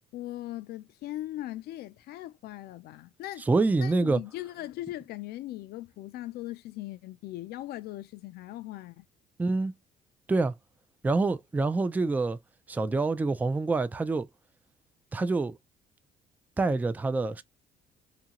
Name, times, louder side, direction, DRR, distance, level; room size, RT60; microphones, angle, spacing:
voice 1, 0.1-3.5 3.8-9.0, left 15 dB, 70° left, 0.4 m, -39 dB
voice 2, 3.4-4.2 9.4-9.7 10.3-10.5 11.0-12.4 12.7-14.3 15.1-15.6 16.6-17.4, right 3 dB, 10° right, 0.3 m, -26 dB
2.7 x 2.5 x 2.8 m
cardioid pair, 110°, 17 cm